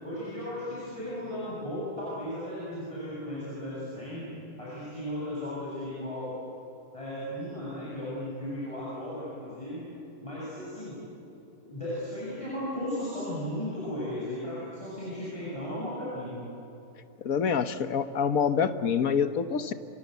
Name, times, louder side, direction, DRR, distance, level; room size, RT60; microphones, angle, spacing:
voice 1, 0.0-6.3 6.9-9.8 10.2-11.0 11.6-16.4, left 1 dB, 20° left, -9 dB, 7.8 m, -35 dB
voice 2, 17.2-19.7, left 6 dB, 70° left, 10 dB, 1.5 m, -26 dB
27.0 x 26.0 x 8.1 m, 2.8 s
omnidirectional pair, 1.5 m